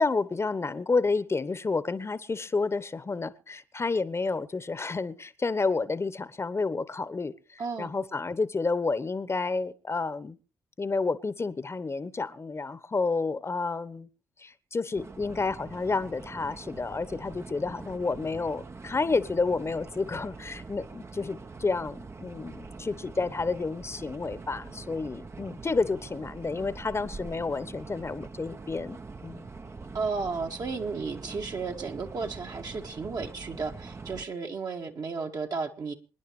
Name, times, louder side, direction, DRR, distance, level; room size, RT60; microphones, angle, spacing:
voice 1, 0.0-10.4 10.8-14.1 14.4-29.5, left 4 dB, 30° left, 1.2 m, -30 dB
voice 2, 7.6-7.9 29.9-35.9, right 4 dB, 50° right, 2.1 m, -33 dB
sound 1, 15.0-34.3, right 4 dB, 30° right, 1.0 m, -44 dB
27.0 x 10.5 x 3.3 m
hypercardioid pair, 40°, 8 cm